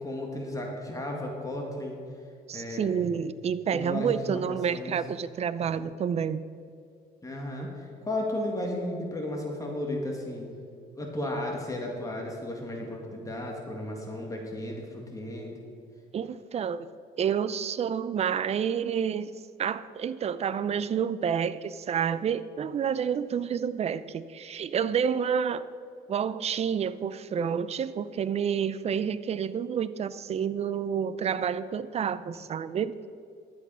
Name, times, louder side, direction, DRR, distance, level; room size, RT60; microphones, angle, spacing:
voice 1, 0.0-2.0 2.5-3.1 3.7-5.0 7.2-10.5 10.9-15.6, left 1 dB, 20° left, 0 dB, 1.9 m, -34 dB
voice 2, 2.5-6.4 16.1-16.9 17.2-19.3 19.6-25.6 26.1-33.0, right 7 dB, 40° right, 15 dB, 0.5 m, -29 dB
11.5 x 8.4 x 5.6 m, 2.4 s
cardioid pair, 110°, 17 cm